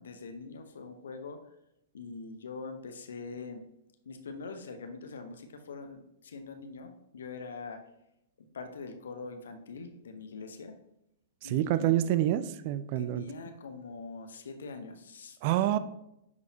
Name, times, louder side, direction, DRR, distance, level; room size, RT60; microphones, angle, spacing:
voice 1, 0.0-1.4 1.9-3.6 4.0-7.8 8.4-10.8 11.4-11.9 13.0-15.4 15.7-15.8, left 4 dB, 75° left, 7 dB, 0.9 m, -43 dB
voice 2, 11.4-13.3 15.4-15.8, right 13 dB, 50° right, 14 dB, 0.4 m, -27 dB
10.5 x 4.1 x 2.8 m, 0.84 s
hypercardioid pair, 110°, 0 cm